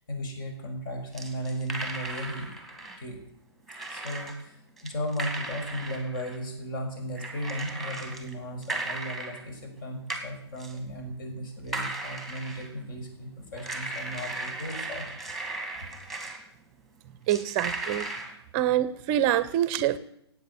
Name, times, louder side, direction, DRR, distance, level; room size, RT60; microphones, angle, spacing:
voice 1, 0.0-2.5 2.8-3.2 3.7-15.1, equal, 50° left, 4 dB, 6.0 m, -36 dB
sound 1, 1.1-3.0 3.7-4.4 4.8-6.4 7.2-8.3 8.6-9.4 10.1-10.3 10.6-10.8 11.7-12.8 13.6-16.4 17.3-18.3, right 2 dB, ahead, 2.2 m, -36 dB
voice 2, 17.3-18.1 18.5-20.0, right 12 dB, 30° right, 15 dB, 0.7 m, -25 dB
17.0 x 8.7 x 8.4 m, 0.73 s
figure-of-eight pair, 130°, 14 cm